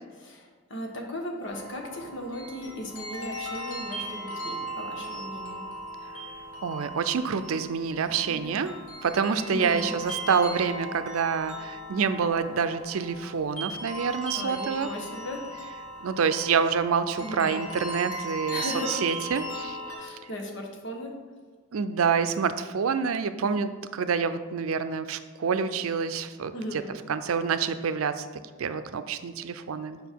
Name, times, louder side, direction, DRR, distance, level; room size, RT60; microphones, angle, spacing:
voice 1, 0.2-5.7 8.1-8.5 9.5-9.9 14.3-15.5 17.2-17.5 18.5-19.0 20.0-21.2 26.5-26.9, equal, 60° left, 1 dB, 1.2 m, -37 dB
sound 1, 1.5-20.0, right 1 dB, 85° left, 1.9 m, -38 dB
voice 2, 6.6-8.7 9.0-14.9 16.0-19.8 21.7-26.8 27.1-28.3 28.6-30.0, right 6 dB, 85° right, 11 dB, 0.5 m, -27 dB
7.0 x 5.2 x 4.5 m, 1.5 s
head